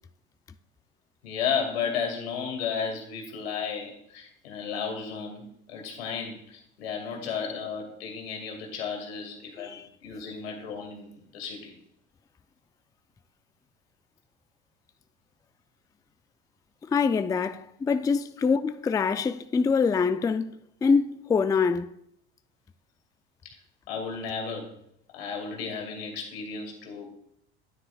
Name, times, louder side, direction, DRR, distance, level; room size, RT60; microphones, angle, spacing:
voice 1, 1.2-11.7 23.9-24.7 25.1-27.1, left 6 dB, 85° left, 2.2 m, -33 dB
voice 2, 16.9-20.5 20.8-21.9, left 5 dB, 10° left, 0.3 m, -25 dB
9.6 x 9.6 x 2.3 m
hypercardioid pair, 80°, 30 cm